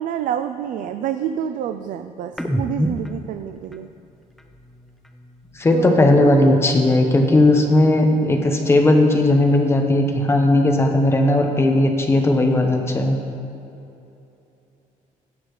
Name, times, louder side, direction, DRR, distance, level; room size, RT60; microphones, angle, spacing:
voice 1, 0.0-3.9 5.7-6.5, right 10 dB, 70° right, 9 dB, 0.4 m, -27 dB
sound 1, 2.3-5.9 6.2-8.1 8.3-10.2 10.5-12.4, equal, ahead, 0.5 m, -34 dB
voice 2, 5.5-13.2, left 1 dB, 20° left, 3 dB, 1.0 m, -17 dB
17.0 x 6.6 x 3.2 m, 2.8 s
cardioid pair, 140°, 14 cm